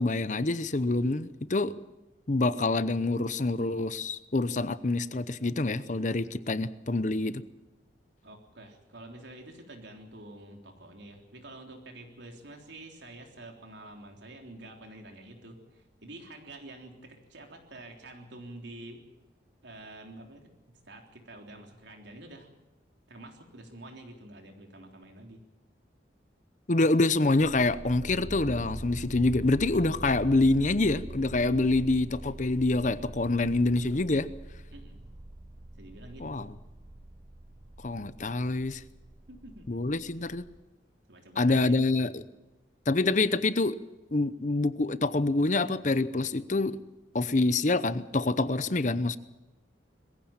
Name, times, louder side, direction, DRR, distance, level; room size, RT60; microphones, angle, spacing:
voice 1, 0.0-1.7 2.3-7.4 26.7-34.3 36.2-36.5 37.8-38.8 39.7-40.4 41.4-42.2 42.9-43.8 44.1-46.8 47.1-49.2, left 2 dB, 40° left, 15 dB, 0.8 m, -26 dB
voice 2, 8.2-19.0 19.6-22.5 23.1-25.4 34.7-35.0 35.8-36.4 39.3-39.8 41.1-41.8, right 1 dB, 80° right, 3 dB, 3.6 m, -48 dB
sound 1, 27.2-40.6, right 1 dB, 25° right, 0.8 m, -44 dB
21.5 x 15.5 x 8.9 m, 1.1 s
head